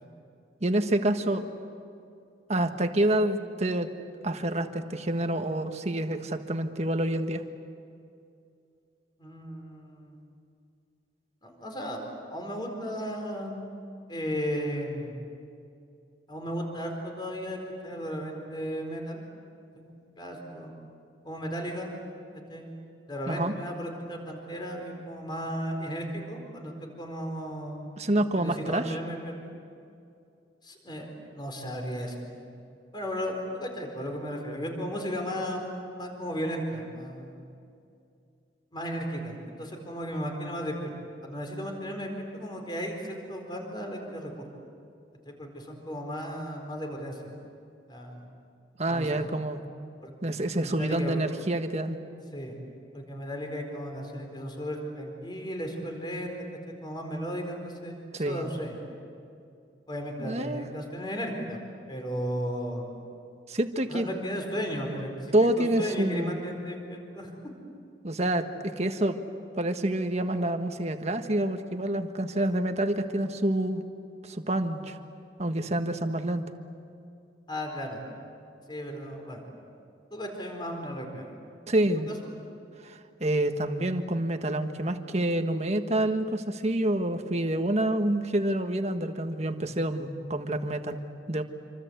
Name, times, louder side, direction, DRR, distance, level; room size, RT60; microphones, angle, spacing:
voice 1, 0.6-1.4 2.5-3.9 4.2-7.4 23.3-23.5 28.0-29.0 48.8-49.6 50.2-52.0 58.1-58.5 60.2-60.7 63.5-64.1 65.3-66.4 68.0-69.2 69.6-73.8 74.2-75.0 75.4-76.5 81.7-82.1 82.8-91.0 91.3-91.4, right 1 dB, 40° right, 6 dB, 1.5 m, -27 dB
voice 2, 9.2-10.2 11.4-12.0 12.3-13.6 14.1-15.1 16.3-19.2 19.7-20.7 21.2-21.9 22.5-22.7 23.1-27.9 28.4-29.3 30.6-32.5 32.9-35.6 36.0-37.5 38.7-40.7 41.2-44.4 45.2-47.3 47.9-48.2 48.9-49.2 50.0-50.1 50.6-51.2 52.3-52.5 52.9-56.3 56.8-58.8 59.9-61.6 61.9-63.0 63.9-67.3 77.5-78.0 78.7-79.4 80.1-81.3 82.1-82.2, equal, 25° left, 3 dB, 4.5 m, -35 dB
27.0 x 25.5 x 8.2 m, 2.5 s
head